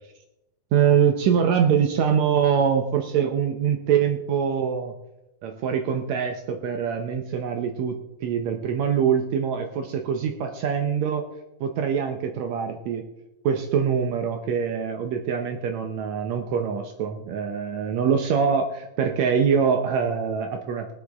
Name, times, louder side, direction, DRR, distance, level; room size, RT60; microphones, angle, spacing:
voice 1, 0.7-4.9 5.4-7.9 8.2-11.2 11.6-13.1 13.4-20.9, right 7 dB, 85° right, 4 dB, 1.5 m, -24 dB
23.0 x 8.0 x 3.6 m, 0.94 s
omnidirectional pair, 4.4 m